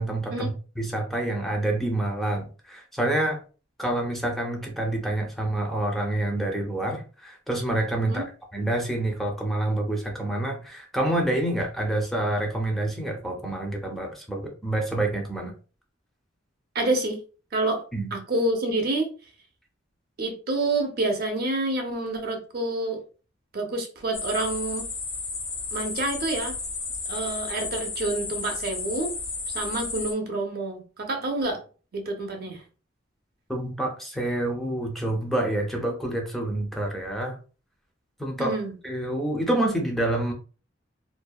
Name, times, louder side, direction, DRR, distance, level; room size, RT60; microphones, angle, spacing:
voice 1, 0.0-3.4 3.8-15.5 17.9-18.1 33.5-37.4 38.2-38.5 38.8-40.3, right 1 dB, ahead, 0.5 m, -27 dB
voice 2, 16.7-17.2 17.5-17.8 18.1-19.1 20.2-23.0 23.5-24.9 25.7-26.6 27.1-29.1 29.5-31.6 31.9-32.6 38.4-38.8, right 2 dB, 55° right, 0.6 m, -28 dB
sound 1, 24.1-30.1, left 4 dB, 85° left, 1.1 m, -33 dB
2.6 x 2.1 x 2.3 m
head